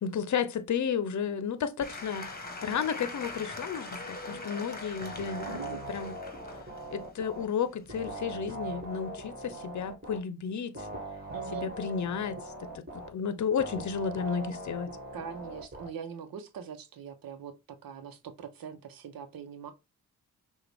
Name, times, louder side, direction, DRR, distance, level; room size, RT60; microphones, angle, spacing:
voice 1, 0.0-2.3 2.6-6.1 6.9-10.7 11.5-14.9, left 7 dB, 50° left, 0.8 m, -32 dB
Applause / Crowd, 1.8-8.1, left 2 dB, 25° left, 1.4 m, -42 dB
sound 1, 5.0-7.4 7.9-10.2 10.8-13.1 13.6-15.9, right 2 dB, 25° right, 2.1 m, -41 dB
voice 2, 5.5-5.8 11.3-11.7 15.1-19.7, right 7 dB, 70° right, 0.9 m, -42 dB
5.7 x 2.5 x 3.5 m
supercardioid pair, 50°, 36 cm